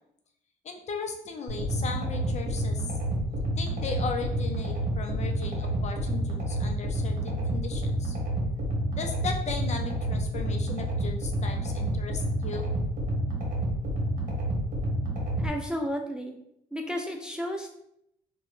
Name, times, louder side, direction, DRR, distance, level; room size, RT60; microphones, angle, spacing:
voice 1, 0.6-2.9 3.6-8.2 8.9-12.7, left 4 dB, 45° left, 3 dB, 0.5 m, -37 dB
sound 1, 1.5-15.5, right 1 dB, 55° right, 1.0 m, -29 dB
voice 2, 15.4-16.4 16.7-17.7, equal, 5° right, 2 dB, 0.3 m, -32 dB
3.0 x 2.2 x 3.0 m, 0.76 s
cardioid pair, 85°, 17 cm